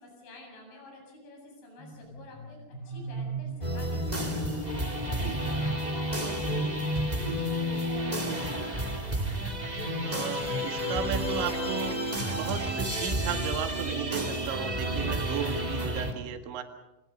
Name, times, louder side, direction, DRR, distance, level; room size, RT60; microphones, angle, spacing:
voice 1, 0.0-8.7, left 1 dB, 90° left, 1 dB, 10.5 m, -49 dB
sound 1, 1.8-7.1, right 1 dB, 40° left, 1.5 m, -35 dB
sound 2, 3.6-16.1, equal, 15° right, 1.8 m, -31 dB
voice 2, 5.1-5.4 10.0-16.6, right 7 dB, 75° right, 6 dB, 4.1 m, -35 dB
28.0 x 26.5 x 5.5 m, 0.98 s
omnidirectional pair, 5.5 m